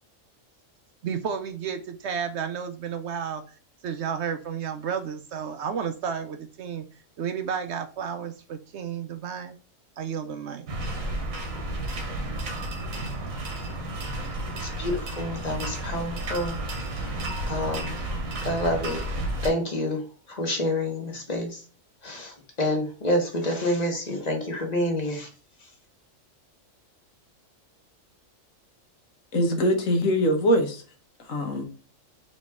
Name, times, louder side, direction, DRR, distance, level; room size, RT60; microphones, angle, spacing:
voice 1, 1.0-3.5 3.8-6.9 7.2-9.5 10.0-10.7, right 7 dB, 65° right, 0.8 m, -32 dB
sound 1, 10.7-19.5, right 1 dB, 85° right, 1.4 m, -32 dB
voice 2, 14.6-16.6 16.9-17.2 17.5-18.0 18.4-19.0 19.4-21.6 22.0-25.3 25.6-25.7, left 1 dB, 35° left, 1.1 m, -28 dB
voice 3, 29.3-30.8 31.3-31.6, equal, 75° left, 1.3 m, -22 dB
4.2 x 3.0 x 3.5 m
omnidirectional pair, 1.4 m